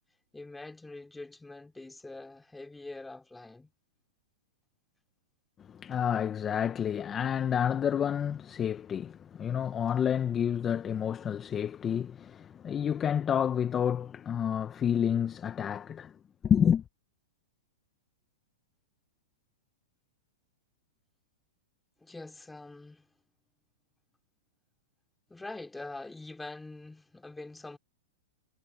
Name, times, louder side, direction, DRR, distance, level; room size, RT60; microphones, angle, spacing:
voice 1, 0.3-3.7 22.0-23.1 25.3-27.8, left 2 dB, 5° left, 3.2 m, -44 dB
voice 2, 5.7-16.1 16.4-16.8, left 8 dB, 20° left, 1.1 m, -29 dB
hypercardioid pair, 130°, 0 cm